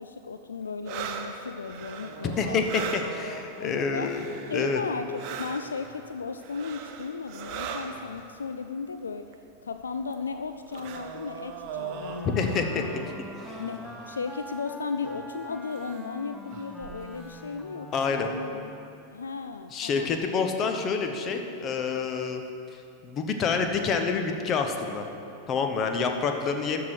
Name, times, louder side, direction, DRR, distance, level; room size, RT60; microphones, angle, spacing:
voice 1, 0.0-2.6 3.6-4.2 4.5-9.3 9.6-13.0 13.6-18.7 19.1-20.2 26.0-26.1, left 4 dB, 70° left, 8 dB, 0.3 m, -35 dB
sound 1, 0.8-4.8 5.1-8.3 9.3-9.4 9.8-14.5 15.0-15.3 15.8-16.0 16.5-17.3, right 7 dB, 40° right, 0.8 m, -40 dB
voice 2, 2.4-4.3 4.5-4.8 12.3-12.8 13.4-13.6 17.9-18.3 19.7-22.4 22.7-25.0 25.5-26.8, left 5 dB, 30° left, 5 dB, 1.0 m, -28 dB
Wind instrument woodwind instrument, 11.7-19.1, left 1 dB, 5° left, 0.7 m, -44 dB
13.0 x 4.8 x 7.7 m, 2.7 s
figure-of-eight pair, 90°, 0 cm